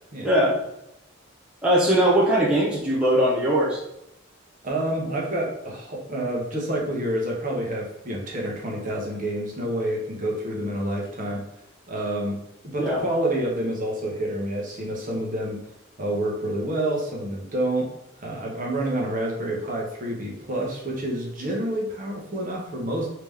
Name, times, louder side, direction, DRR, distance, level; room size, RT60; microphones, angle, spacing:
voice 1, 0.2-0.6 1.6-3.8 12.8-13.0, right 1 dB, 5° right, -7 dB, 0.6 m, -20 dB
voice 2, 4.6-11.4 11.9-12.4 12.6-15.6 16.0-23.1, right 1 dB, 40° right, -2 dB, 0.9 m, -28 dB
3.3 x 2.9 x 3.5 m, 0.84 s
head